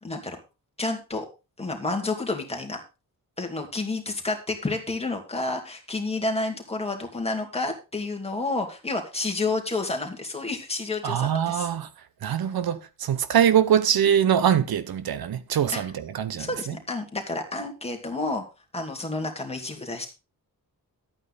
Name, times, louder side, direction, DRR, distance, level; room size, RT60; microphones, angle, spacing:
voice 1, 0.0-0.4 0.8-1.3 1.6-2.8 3.4-11.7 15.7-15.8 16.4-18.4 18.7-20.1, left 2 dB, 15° left, 2.4 m, -30 dB
voice 2, 11.0-11.9 12.2-16.7, right 9 dB, 90° right, 1.0 m, -23 dB
12.0 x 8.7 x 4.1 m
wide cardioid pair, 155°, 35 cm